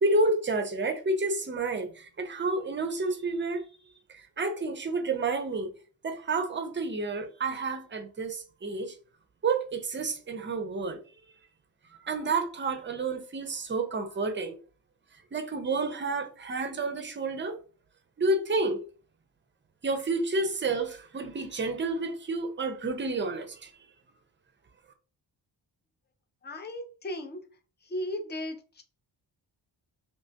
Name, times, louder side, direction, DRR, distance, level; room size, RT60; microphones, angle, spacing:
voice 1, 0.0-3.7 4.1-5.7 6.0-8.9 9.4-11.0 12.0-14.6 15.3-17.6 18.2-18.8 19.8-23.7, right 3 dB, 25° right, 0.5 m, -30 dB
voice 2, 26.4-27.4 27.8-28.8, left 1 dB, 25° left, 0.5 m, -36 dB
3.3 x 2.9 x 2.8 m
wide cardioid pair, 165°, 43 cm